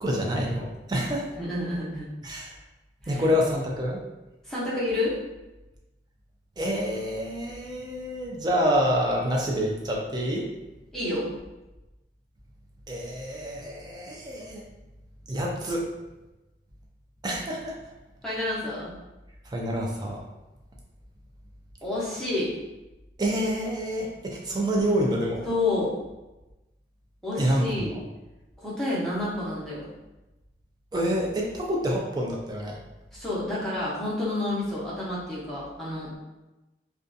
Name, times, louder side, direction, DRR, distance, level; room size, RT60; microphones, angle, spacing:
voice 1, 0.0-1.3 2.2-2.5 3.1-4.0 6.6-10.5 12.9-14.6 15.3-15.9 17.2-17.8 19.5-20.2 23.2-25.5 27.4-27.8 30.9-32.8, equal, 25° right, -1 dB, 0.4 m, -27 dB
voice 2, 1.4-2.1 3.0-3.2 4.4-5.2 10.9-11.3 18.2-18.9 21.8-22.5 25.5-25.9 27.2-28.0 28.6-29.9 33.1-36.1, left 2 dB, 5° left, -9 dB, 0.7 m, -29 dB
2.5 x 2.3 x 2.5 m, 1.0 s
head